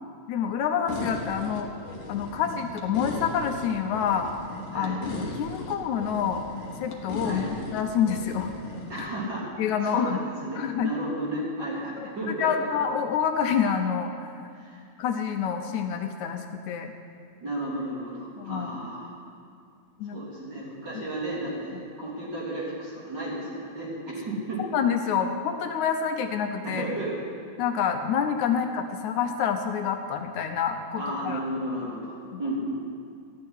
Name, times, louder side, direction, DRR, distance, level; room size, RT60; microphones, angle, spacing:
voice 1, 0.3-1.7 2.1-4.3 4.7-6.4 6.8-8.5 9.6-10.2 10.6-10.9 12.0-14.3 15.0-16.9 18.4-18.8 20.0-20.2 24.7-26.9 27.6-31.4 32.3-32.4, left 7 dB, 75° left, 5 dB, 2.1 m, -27 dB
sound 1, 0.9-9.0, left 3 dB, 50° left, 1.8 m, -36 dB
voice 2, 8.9-9.5 9.8-12.5 14.5-14.8 17.4-19.1 20.1-24.6 26.6-27.1 28.5-28.6 30.9-32.8, right 1 dB, 35° right, -7 dB, 3.8 m, -33 dB
14.0 x 6.6 x 9.7 m, 2.3 s
omnidirectional pair, 3.5 m